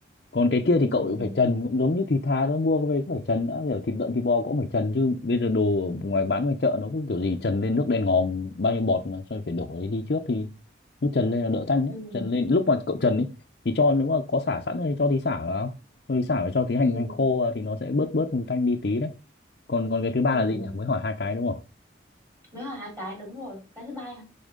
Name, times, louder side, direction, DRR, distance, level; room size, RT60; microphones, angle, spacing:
voice 1, 0.3-10.5 11.0-13.3 13.6-15.7 16.1-19.1 19.7-21.6, left 3 dB, 55° left, 0.6 m, -25 dB
voice 2, 0.9-1.4 11.9-12.3 16.8-17.2 20.3-20.8 22.5-24.3, left 1 dB, 15° right, 3.8 m, -38 dB
10.5 x 4.3 x 3.7 m
head